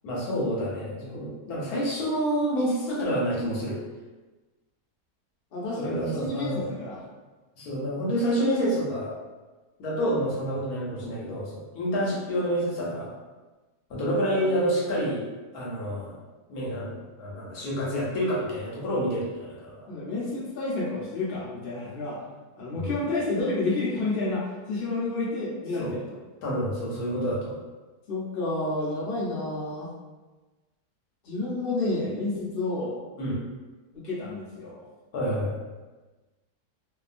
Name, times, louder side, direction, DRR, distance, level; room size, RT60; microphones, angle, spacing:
voice 1, 0.0-3.8 5.8-6.7 7.6-9.1 9.8-13.1 13.9-15.2 15.5-16.1 16.5-19.9 22.8-23.0 25.8-26.0 26.4-27.6 33.2-33.4 35.1-35.5, equal, 70° left, -5 dB, 1.1 m, -28 dB
voice 2, 5.5-7.0 10.1-10.3 14.2-14.7 19.9-22.2 22.6-26.2 28.1-29.9 31.2-33.0 33.9-34.8, left 2 dB, 50° left, -7 dB, 0.7 m, -30 dB
2.7 x 2.4 x 2.5 m, 1.2 s
omnidirectional pair, 1.8 m